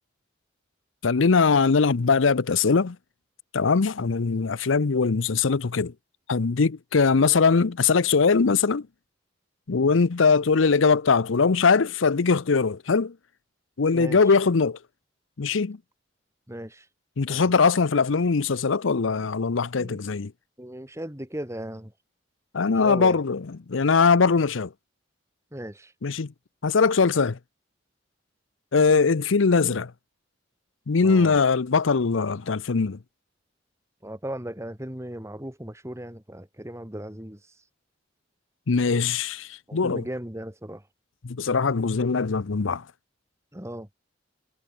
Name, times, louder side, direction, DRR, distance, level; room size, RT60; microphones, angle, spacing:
voice 1, 1.0-3.0 3.5-5.9 6.3-8.9 9.7-13.1 13.8-14.8 15.4-15.8 17.2-20.3 22.5-23.4 23.7-24.7 26.0-26.3 26.6-27.4 28.7-29.9 30.9-33.0 38.7-40.0 41.2-42.8, left 4 dB, 90° left, 0.7 m, -21 dB
voice 2, 13.9-14.3 16.5-16.9 17.3-17.4 19.8-20.0 20.6-21.9 22.6-23.2 25.5-25.9 29.6-29.8 31.0-31.4 34.0-37.4 39.7-40.8 43.5-43.9, right 1 dB, 15° right, 2.9 m, -37 dB
head